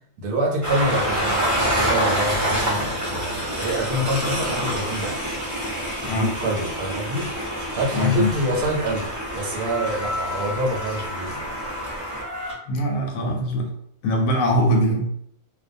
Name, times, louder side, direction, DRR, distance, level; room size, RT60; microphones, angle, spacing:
voice 1, 0.2-5.2 6.0-7.3 7.8-11.5, right 1 dB, 75° right, -1 dB, 1.0 m, -26 dB
Train, 0.6-12.5, equal, 20° right, 0.5 m, -27 dB
voice 2, 7.9-8.3 12.7-13.7 14.0-15.1, equal, 70° left, 1 dB, 0.9 m, -22 dB
2.5 x 2.2 x 2.5 m, 0.67 s
omnidirectional pair, 1.6 m